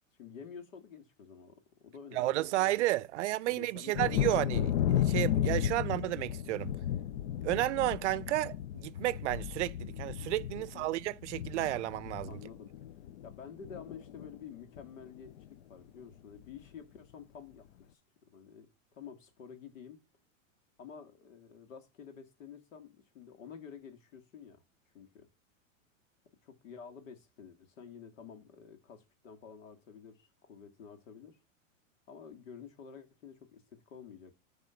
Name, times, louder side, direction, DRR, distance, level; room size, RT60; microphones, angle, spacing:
voice 1, 0.2-2.8 3.5-4.3 7.4-7.6 10.6-10.9 12.3-12.7 13.2-18.0 18.3-18.7 18.9-20.0 20.8-24.6 24.9-25.3 26.4-31.4 32.1-34.3, left 7 dB, 75° left, 2.2 m, -50 dB
voice 2, 2.1-6.7 7.4-12.4, right 16 dB, 60° right, 0.5 m, -32 dB
Thunder, 3.9-13.4 13.6-14.4 14.8-14.9 15.3-15.5, left 11 dB, 60° left, 0.6 m, -34 dB
10.0 x 3.6 x 5.7 m
supercardioid pair, 165°, 39 cm